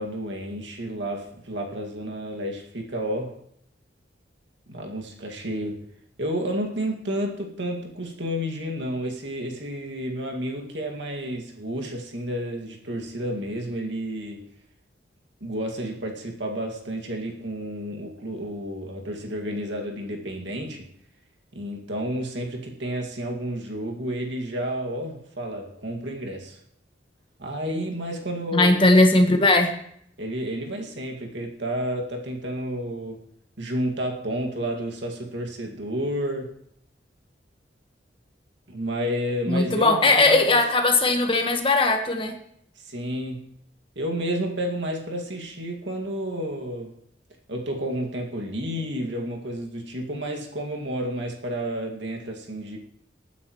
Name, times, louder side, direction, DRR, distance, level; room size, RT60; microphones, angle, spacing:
voice 1, 0.0-3.4 4.7-5.9 6.2-14.4 15.4-20.9 21.5-26.6 27.4-28.8 30.2-33.2 33.6-36.6 38.7-40.6 42.8-43.5 44.0-46.9 47.5-52.8, equal, 70° right, 1 dB, 2.1 m, -31 dB
voice 2, 28.5-29.7 39.5-42.3, left 2 dB, 25° left, 5 dB, 1.3 m, -19 dB
24.0 x 9.4 x 3.1 m, 0.69 s
head